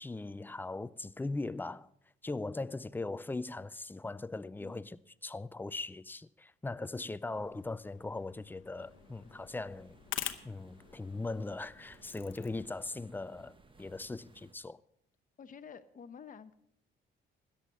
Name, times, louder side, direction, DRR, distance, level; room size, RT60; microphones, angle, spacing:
voice 1, 0.0-1.9 2.2-5.0 5.2-9.9 10.4-14.8, left 3 dB, 10° left, 0.4 m, -39 dB
voice 2, 4.6-4.9 15.4-16.5, left 6 dB, 40° left, 0.9 m, -50 dB
sound 1, 7.3-12.7, left 12 dB, 80° left, 0.9 m, -46 dB
sound 2, 8.8-14.5, right 3 dB, 25° right, 1.2 m, -61 dB
13.5 x 10.0 x 5.5 m
cardioid pair, 90°, 20 cm